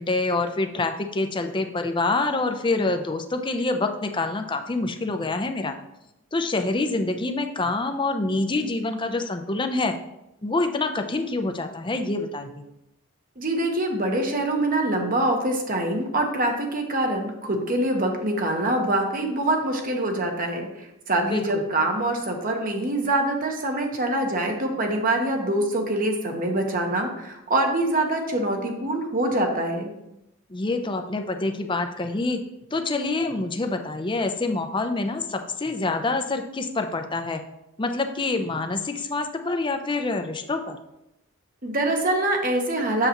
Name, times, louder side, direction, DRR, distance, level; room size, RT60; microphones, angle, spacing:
voice 1, 0.0-5.8 6.3-9.9 10.4-12.6 21.2-21.6 30.5-32.4 32.7-37.4 37.8-40.8, left 3 dB, 25° left, 6 dB, 0.6 m, -26 dB
voice 2, 13.4-29.9 41.6-43.1, right 1 dB, 45° right, 2 dB, 1.2 m, -24 dB
7.8 x 6.8 x 3.0 m, 0.88 s
head